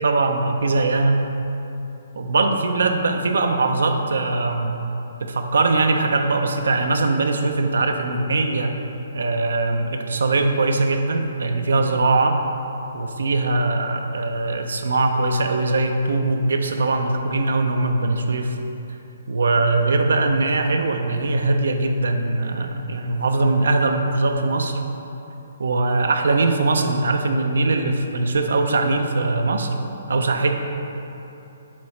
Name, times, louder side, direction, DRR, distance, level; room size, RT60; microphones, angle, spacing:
voice 1, 0.0-1.4 2.2-4.7 5.2-8.7 9.1-12.4 12.9-18.5 19.3-24.8 25.6-29.7 30.1-30.5, right 3 dB, 75° right, 5 dB, 0.6 m, -21 dB
7.5 x 3.8 x 4.3 m, 2.9 s
hypercardioid pair, 140°, 0 cm